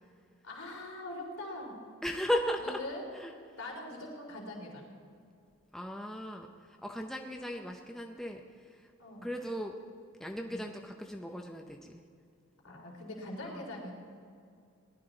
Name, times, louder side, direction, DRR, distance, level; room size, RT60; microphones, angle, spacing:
voice 1, 0.4-1.7 2.6-3.0 3.6-4.9 9.0-9.3 10.4-10.6 12.6-13.9, left 1 dB, 80° left, -2 dB, 3.4 m, -42 dB
voice 2, 2.0-2.8 3.1-3.3 5.7-8.9 9.2-9.8 10.2-12.0 13.4-13.7, equal, ahead, 2 dB, 0.6 m, -37 dB
18.5 x 11.5 x 3.9 m, 2.4 s
head